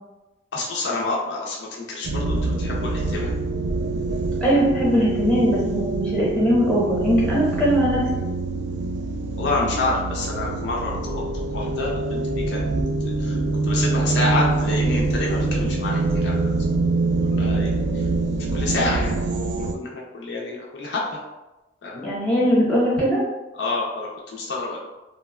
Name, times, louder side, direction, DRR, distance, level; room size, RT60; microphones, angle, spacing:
voice 1, 0.5-3.3 9.4-12.7 13.2-13.4 13.7-16.3 17.3-18.0 18.5-19.1 19.6-21.0 21.8-22.1 23.5-24.8, left 2 dB, 60° left, -2 dB, 0.4 m, -28 dB
sound 1, 2.0-19.7, right 3 dB, 65° right, 0.3 m, -25 dB
voice 2, 4.4-8.0 22.0-23.2, equal, 5° left, -8 dB, 0.7 m, -20 dB
2.9 x 2.1 x 2.2 m, 1.0 s
head